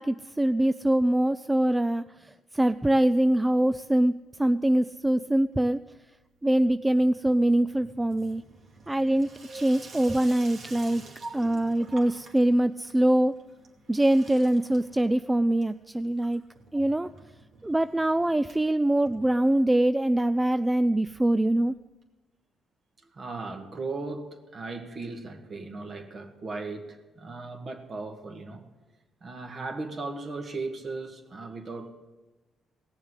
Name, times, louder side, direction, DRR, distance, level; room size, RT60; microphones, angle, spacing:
voice 1, 0.0-4.1 4.4-5.8 6.4-8.4 8.9-11.0 11.3-13.4 13.9-16.4 16.7-17.1 17.6-21.7, right 1 dB, 10° right, 12 dB, 0.3 m, -24 dB
Water tap faucet / Sink (filling or washing), 2.8-3.6 3.8-4.4 4.7-19.9 20.3-20.4 20.6-20.7 20.9-21.0 22.0-22.1, right 3 dB, 60° right, 2.3 m, -52 dB
voice 2, 10.8-11.4 11.8-12.0 12.4-12.5 23.0-28.6 29.2-31.9, right 3 dB, 45° right, 5 dB, 1.9 m, -37 dB
18.0 x 7.2 x 8.1 m, 1.2 s
cardioid pair, 90°, 0 cm